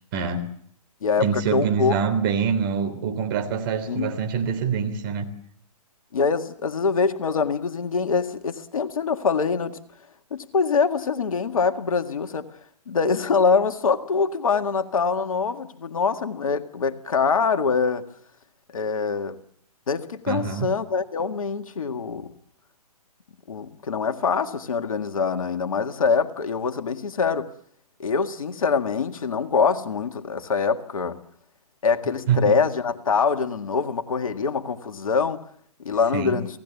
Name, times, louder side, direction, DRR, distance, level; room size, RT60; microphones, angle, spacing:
voice 1, 0.1-0.4 1.2-5.3 20.3-20.7 32.3-32.6 36.1-36.4, right 6 dB, 35° right, 3.6 m, -25 dB
voice 2, 1.0-2.0 3.9-4.1 6.1-9.8 10.3-12.4 12.9-18.0 18.7-19.4 19.9-22.3 23.5-27.5 28.0-31.2 31.8-35.5 35.8-36.5, left 5 dB, 60° left, 1.9 m, -24 dB
28.5 x 17.5 x 7.2 m
figure-of-eight pair, 130°, 20 cm